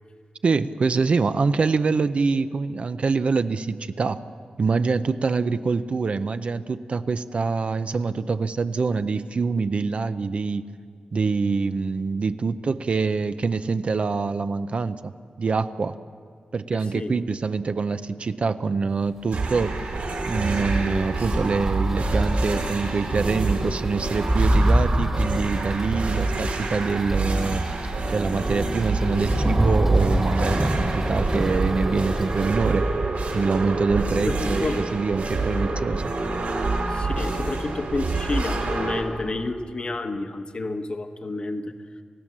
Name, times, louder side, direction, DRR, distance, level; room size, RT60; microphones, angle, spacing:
voice 1, 0.4-4.2 4.6-10.7 11.1-15.1 15.4-16.0 16.5-19.9 20.3-27.6 28.1-32.8 33.3-36.1, right 4 dB, 50° right, 11 dB, 0.6 m, -25 dB
voice 2, 16.7-17.1 31.0-31.1 34.2-34.8 36.9-41.8, left 2 dB, 40° left, 8 dB, 1.1 m, -30 dB
sound 1, 19.3-39.0, right 3 dB, 80° right, 4.2 m, -27 dB
sound 2, 19.8-32.5, right 1 dB, 15° right, 1.6 m, -27 dB
29.0 x 16.0 x 7.4 m, 2.1 s
wide cardioid pair, 170°, 3 cm